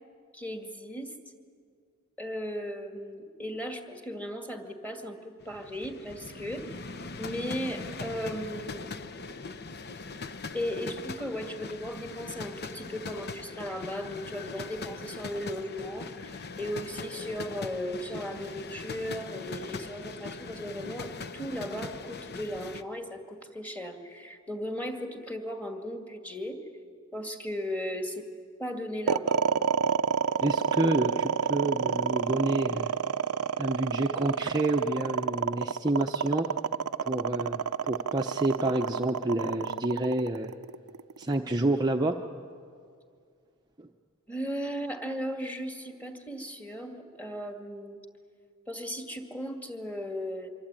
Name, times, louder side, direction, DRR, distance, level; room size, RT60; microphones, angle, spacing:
voice 1, 0.3-1.2 2.2-6.8 7.2-8.9 10.5-26.6 27.1-28.2 28.6-29.4 44.3-48.0 48.7-50.5, equal, 5° left, 4 dB, 2.1 m, -36 dB
sound 1, 5.4-22.8, left 4 dB, 50° left, 0.9 m, -41 dB
sound 2, 29.1-41.3, right 6 dB, 80° right, 0.6 m, -28 dB
voice 2, 30.4-32.9 33.6-36.5 37.0-40.5 41.2-42.2 43.8-43.9, right 2 dB, 20° right, 2 dB, 0.8 m, -29 dB
25.0 x 25.0 x 9.0 m, 2.2 s
head